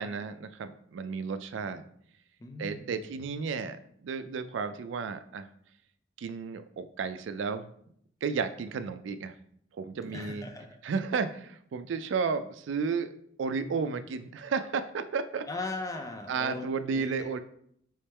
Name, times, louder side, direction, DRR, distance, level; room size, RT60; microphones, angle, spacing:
voice 1, 0.0-1.8 2.6-3.8 4.0-5.5 6.2-7.7 8.2-9.3 9.8-10.4 10.8-13.1 13.4-15.5 16.3-17.4, right 5 dB, 75° right, 10 dB, 0.4 m, -33 dB
voice 2, 2.4-3.1 10.0-10.8 15.5-17.3, left 2 dB, 20° left, 4 dB, 0.4 m, -39 dB
3.4 x 3.1 x 4.3 m, 0.66 s
head